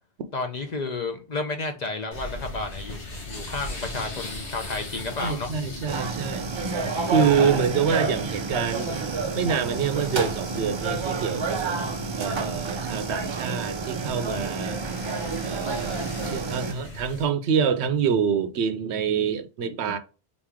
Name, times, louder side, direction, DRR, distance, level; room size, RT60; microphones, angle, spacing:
voice 1, 0.3-5.5, left 3 dB, 45° left, 0.6 m, -31 dB
sound 1, 2.1-17.2, left 2 dB, 90° left, 1.8 m, -39 dB
voice 2, 5.2-6.5 7.1-8.9 9.3-11.7 12.2-14.8 15.4-20.0, right 7 dB, 75° right, 0.9 m, -26 dB
sound 2, 5.9-16.7, right 4 dB, 50° right, 0.3 m, -29 dB
3.9 x 3.1 x 3.5 m
omnidirectional pair, 1.1 m